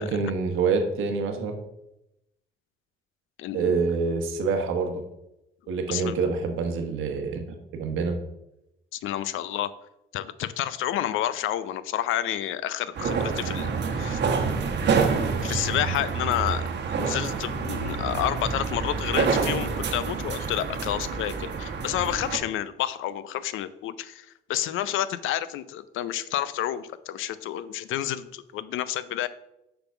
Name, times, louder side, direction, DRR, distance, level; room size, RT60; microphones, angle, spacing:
voice 1, 0.0-1.5 3.5-5.0 5.7-7.4 7.7-8.2, right 4 dB, 90° right, 4 dB, 1.2 m, -26 dB
voice 2, 3.4-3.8 5.7-6.2 8.9-9.7 10.1-14.2 15.4-16.6 17.0-29.3, left 12 dB, 85° left, 15 dB, 0.5 m, -30 dB
sound 1, 12.9-22.4, right 5 dB, 60° right, 1.1 m, -27 dB
6.8 x 3.9 x 5.8 m, 0.87 s
cardioid pair, 90°, 20 cm